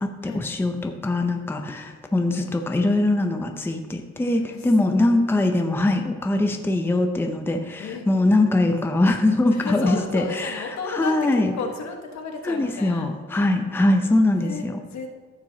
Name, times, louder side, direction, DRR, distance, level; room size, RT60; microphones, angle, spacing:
voice 1, 0.0-11.5 12.4-14.8, left 2 dB, 5° left, 5 dB, 0.6 m, -22 dB
voice 2, 4.1-4.7 7.8-8.1 9.5-13.1 14.4-15.1, left 4 dB, 65° left, 3 dB, 1.4 m, -33 dB
14.0 x 6.0 x 2.9 m, 1.4 s
cardioid pair, 90°, 30 cm